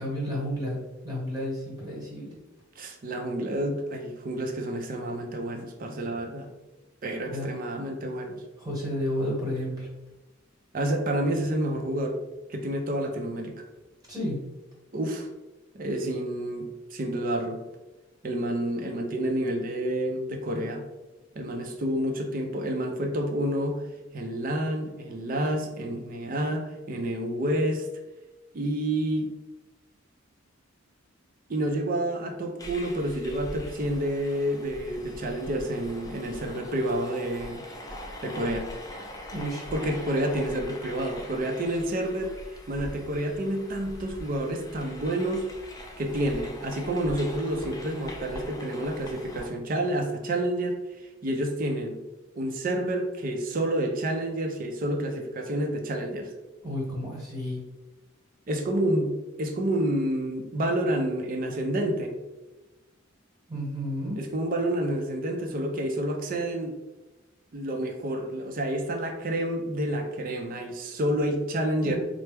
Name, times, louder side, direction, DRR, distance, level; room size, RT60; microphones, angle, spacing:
voice 1, 0.0-2.3 7.2-7.5 8.6-9.9 14.1-14.5 39.3-39.6 56.6-57.6 63.5-64.2 71.8-72.0, equal, 20° right, -4 dB, 1.2 m, -31 dB
voice 2, 2.8-6.5 7.0-8.4 10.7-12.2 12.5-13.5 14.9-15.3 15.7-17.6 18.2-20.9 21.4-23.8 24.1-27.9 28.5-29.3 31.5-37.6 38.2-38.7 39.7-42.3 42.7-45.5 46.0-50.8 51.2-52.0 52.3-56.3 58.5-62.2 64.2-66.8 67.5-72.0, right 1 dB, 45° right, 3 dB, 0.5 m, -29 dB
sound 1, 32.6-49.5, left 1 dB, 15° left, 0.4 m, -42 dB
4.4 x 2.0 x 3.3 m, 1.1 s
head